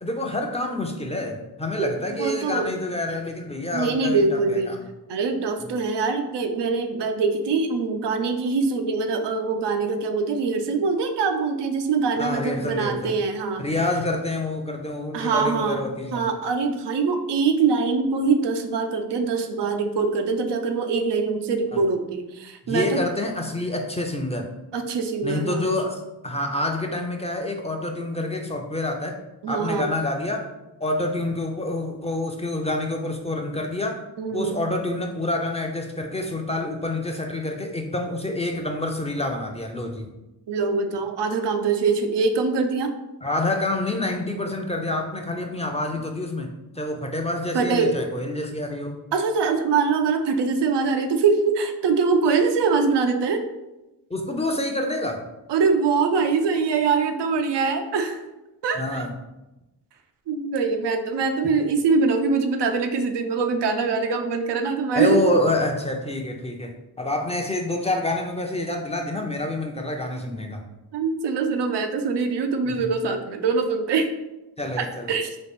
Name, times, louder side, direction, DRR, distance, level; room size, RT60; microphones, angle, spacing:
voice 1, 0.0-4.2 4.5-4.8 5.6-5.7 12.2-13.1 13.6-16.3 22.7-24.5 25.2-29.2 29.5-30.5 30.8-34.0 34.3-40.1 43.2-49.0 54.1-55.2 58.8-59.1 64.9-70.6 72.7-72.9 74.6-75.1, left 1 dB, 15° left, 2 dB, 0.5 m, -27 dB
voice 2, 2.2-2.7 3.7-4.7 5.1-13.6 15.1-15.8 16.1-23.0 24.7-25.8 29.4-29.9 34.2-34.6 40.5-42.9 47.5-48.0 49.1-53.4 55.5-58.2 58.6-59.1 60.3-65.2 70.9-74.1 75.1-75.3, right 4 dB, 85° right, 6 dB, 0.5 m, -23 dB
4.0 x 2.4 x 3.5 m, 0.98 s
cardioid pair, 60°, 41 cm